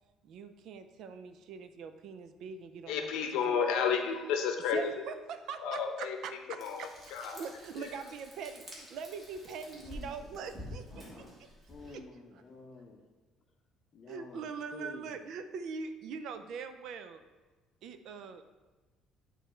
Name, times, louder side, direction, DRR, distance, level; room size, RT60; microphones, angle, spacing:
voice 1, 0.2-3.6 4.7-6.9 7.3-11.0 14.1-17.2 17.8-18.4, right 5 dB, 55° right, 9 dB, 0.4 m, -42 dB
voice 2, 2.9-5.1 5.6-6.2 6.6-7.5 7.8-8.0, left 6 dB, 80° left, 4 dB, 0.8 m, -32 dB
Frying (food), 6.6-12.0, equal, 15° right, 1.3 m, -49 dB
voice 3, 9.7-10.5 10.7-10.9 11.4-13.0 13.9-15.2, left 3 dB, 25° left, 3 dB, 0.7 m, -50 dB
8.9 x 3.1 x 4.4 m, 1.2 s
cardioid pair, 175°, 0 cm